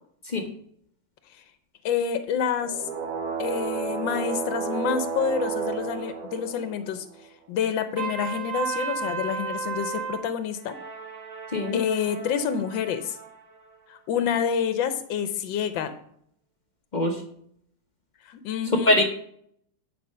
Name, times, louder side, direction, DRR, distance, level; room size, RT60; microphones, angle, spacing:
voice 1, 0.2-0.5 11.5-11.8 16.9-17.2 18.8-19.0, left 1 dB, 35° left, 4 dB, 0.8 m, -22 dB
voice 2, 1.8-2.9 3.4-7.1 7.5-10.8 11.7-13.2 13.9-15.9 18.2-18.9, left 7 dB, 90° left, 10 dB, 1.5 m, -28 dB
sound 1, 2.6-7.2 10.5-13.4, right 6 dB, 50° right, 1.7 m, -33 dB
Trumpet, 8.0-10.2, right 6 dB, 90° right, 2.4 m, -31 dB
9.5 x 5.5 x 5.5 m, 0.66 s
omnidirectional pair, 2.0 m